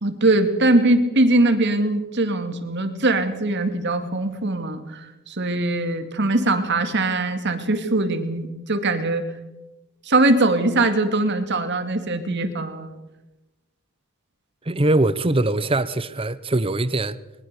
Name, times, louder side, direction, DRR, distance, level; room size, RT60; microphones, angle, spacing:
voice 1, 0.0-9.3 10.1-13.0, right 2 dB, 50° right, 2.3 m, -21 dB
voice 2, 14.6-17.2, right 2 dB, 25° right, 0.9 m, -22 dB
22.5 x 21.0 x 6.8 m
head